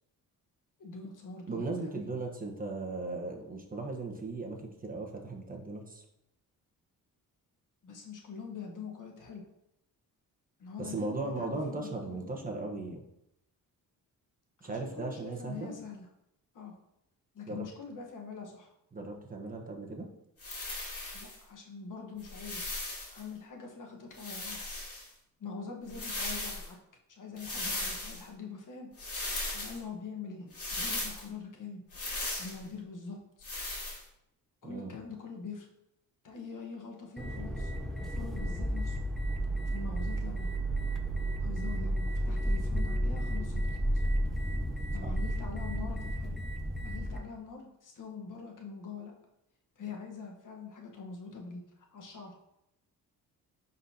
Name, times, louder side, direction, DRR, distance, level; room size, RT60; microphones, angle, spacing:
voice 1, 0.8-2.0 7.8-9.4 10.6-12.2 14.6-16.0 16.5-16.7 17.3-18.7 21.1-22.8 23.1-24.8 25.4-26.8 27.1-28.9 29.5-30.5 30.8-31.8 32.4-33.5 34.6-35.7 36.2-37.7 38.0-39.0 39.7-40.5 41.4-43.6 43.9-44.0 44.9-46.4 46.8-49.1 49.8-51.6 51.9-52.4, left 5 dB, 60° left, 1 dB, 1.3 m, -44 dB
voice 2, 1.5-6.0 10.8-13.0 14.6-15.7 17.5-17.7 18.9-20.1 34.6-34.9 45.0-45.1, right 3 dB, 25° right, 1 dB, 1.1 m, -37 dB
sound 1, 20.4-21.4 22.2-23.2 24.1-25.1 25.9-26.7 27.4-28.2 29.0-29.8 30.5-31.2 31.9-32.6 33.4-34.0, left 2 dB, 40° left, 2.4 m, -37 dB
sound 2, 37.2-47.2, right 1 dB, ahead, 0.7 m, -32 dB
9.9 x 4.0 x 2.8 m, 0.83 s
cardioid pair, 95°, 35 cm